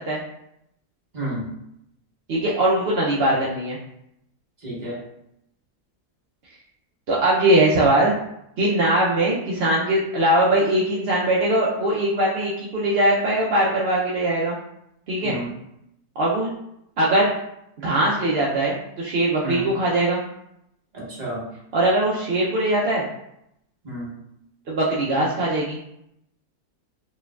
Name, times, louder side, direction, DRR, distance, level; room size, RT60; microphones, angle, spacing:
voice 1, 1.1-1.4 4.6-5.0 15.2-15.5 19.4-19.7 20.9-21.4 23.8-24.1, right 1 dB, 30° right, -6 dB, 1.1 m, -31 dB
voice 2, 2.3-3.8 7.1-8.1 8.6-14.5 15.1-15.4 16.2-16.5 17.0-17.3 17.8-20.2 21.7-23.1 24.7-25.8, right 1 dB, 60° right, -5 dB, 0.6 m, -21 dB
4.4 x 3.0 x 2.3 m, 0.78 s
omnidirectional pair, 1.7 m